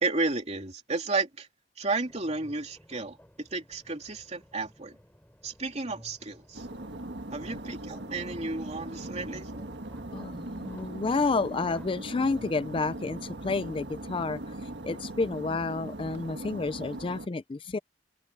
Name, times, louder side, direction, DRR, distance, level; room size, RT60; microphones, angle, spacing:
voice 1, 0.0-1.5 1.8-5.0 5.4-6.7 7.3-9.5, right 3 dB, 40° right, 3.0 m, -32 dB
sound 1, 2.0-17.1, equal, 10° left, 5.2 m, -54 dB
sound 2, 6.5-17.3, right 1 dB, 75° right, 1.7 m, -40 dB
voice 2, 10.1-17.8, left 3 dB, 30° left, 0.4 m, -30 dB
open air
head